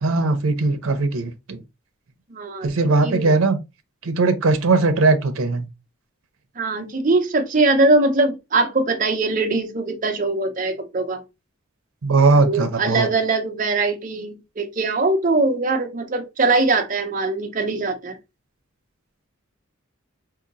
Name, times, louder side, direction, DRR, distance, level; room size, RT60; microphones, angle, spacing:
voice 1, 0.0-1.6 2.6-3.6 4.0-5.7 12.0-13.1, right 3 dB, 90° right, 0.6 m, -19 dB
voice 2, 2.3-2.7 3.0-3.3 6.6-11.2 12.4-18.2, right 3 dB, 40° right, 0.6 m, -21 dB
4.6 x 2.8 x 2.4 m
head